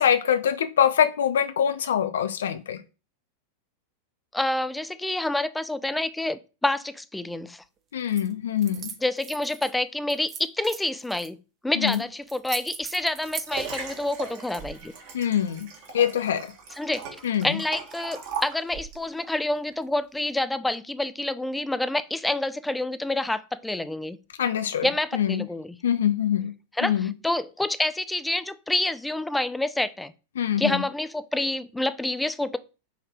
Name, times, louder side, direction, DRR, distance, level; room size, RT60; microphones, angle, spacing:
voice 1, 0.0-2.8 7.9-8.9 11.8-12.0 15.1-15.7 15.9-16.4 17.2-17.6 24.4-24.9 25.1-25.4 25.8-26.5 26.8-27.1 30.4-30.8, left 9 dB, 65° left, 0.5 m, -24 dB
voice 2, 4.3-7.6 9.0-11.4 11.6-14.9 16.7-17.0 17.4-24.2 24.8-25.8 26.7-30.1 30.6-32.6, left 1 dB, 5° left, 0.3 m, -28 dB
sound 1, 8.1-8.3 8.6-9.7 10.1-11.3 11.9-12.0 12.3-13.5, right 7 dB, 30° right, 0.7 m, -38 dB
Liquid, 12.8-19.1 19.7-19.8, right 5 dB, 50° right, 1.2 m, -38 dB
4.9 x 2.7 x 3.3 m
figure-of-eight pair, 90°, 0 cm